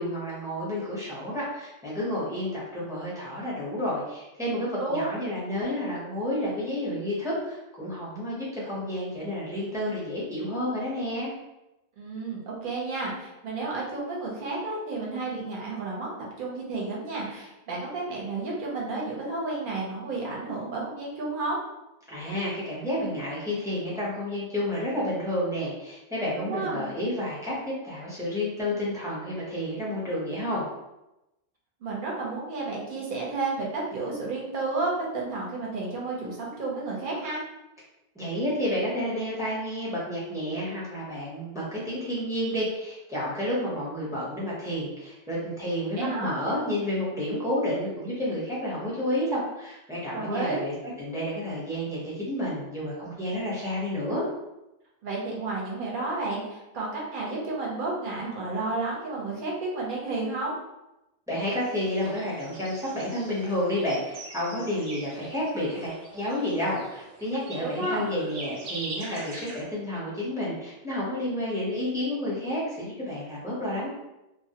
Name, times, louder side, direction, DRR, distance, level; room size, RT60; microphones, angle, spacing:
voice 1, 0.0-11.3 22.1-30.7 38.1-54.2 61.3-73.9, left 1 dB, 5° right, -8 dB, 0.5 m, -30 dB
voice 2, 12.0-16.1 16.4-21.6 26.4-26.9 31.8-37.4 46.0-46.4 50.1-50.7 55.0-60.5 67.6-68.1, right 3 dB, 55° right, -4 dB, 0.8 m, -31 dB
sound 1, 61.4-69.6, right 2 dB, 85° right, 0.9 m, -43 dB
2.2 x 2.0 x 2.7 m, 0.95 s
omnidirectional pair, 1.2 m